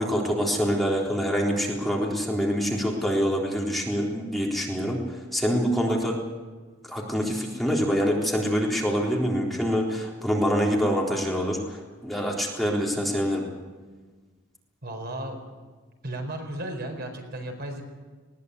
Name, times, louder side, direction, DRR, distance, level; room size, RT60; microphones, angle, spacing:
voice 1, 0.0-6.2 6.9-13.5, equal, ahead, -2 dB, 3.7 m, -25 dB
voice 2, 14.8-15.4 16.0-17.8, right 1 dB, 55° right, 4 dB, 4.6 m, -34 dB
20.5 x 18.5 x 8.2 m, 1.3 s
head